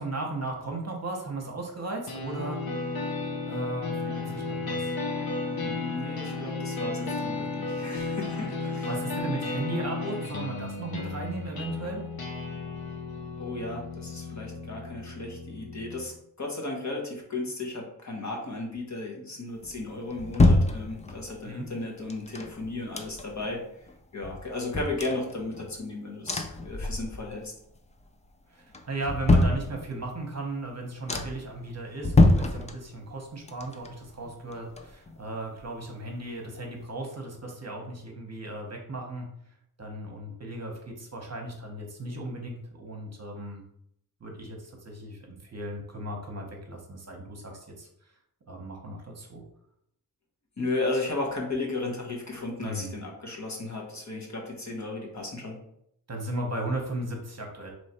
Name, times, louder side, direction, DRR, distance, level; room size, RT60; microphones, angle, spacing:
voice 1, 0.0-2.6 3.5-4.9 8.8-12.0 21.4-21.7 28.5-39.3 39.8-43.6 44.2-47.9 48.5-49.4 52.6-53.0 56.1-57.7, right 2 dB, 45° right, 1 dB, 0.9 m, -36 dB
sound 1, 2.1-16.1, left 3 dB, 70° left, 0.8 m, -34 dB
voice 2, 5.5-8.9 13.4-23.6 24.1-27.5 50.6-55.6, left 2 dB, 45° left, 0 dB, 1.0 m, -34 dB
sound 2, 19.6-21.4 22.1-23.5 23.9-24.0 24.2-25.8 26.3-27.4 27.8-28.3 28.7-30.2 30.6-30.7 31.1-31.6 32.0-33.2 33.5-35.3 35.6-35.7, left 2 dB, 20° left, 0.3 m, -26 dB
3.1 x 3.1 x 4.2 m, 0.72 s
wide cardioid pair, 100°, 38 cm